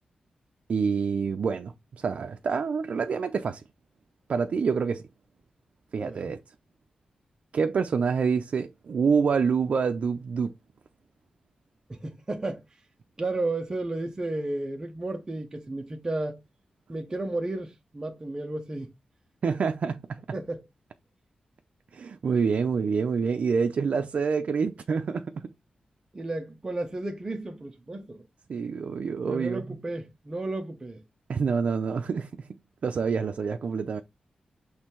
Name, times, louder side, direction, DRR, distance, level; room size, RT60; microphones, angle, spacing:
voice 1, 0.7-3.6 4.3-5.1 5.9-6.4 7.5-10.5 19.4-20.2 21.9-25.5 28.5-29.8 31.3-32.5 32.8-34.0, right 5 dB, 55° right, 0.5 m, -27 dB
voice 2, 6.0-6.3 11.9-12.6 13.2-16.4 16.9-18.9 20.3-20.6 26.1-28.2 29.3-31.0, right 2 dB, 25° right, 0.8 m, -33 dB
6.5 x 3.3 x 4.4 m
wide cardioid pair, 160°, 3 cm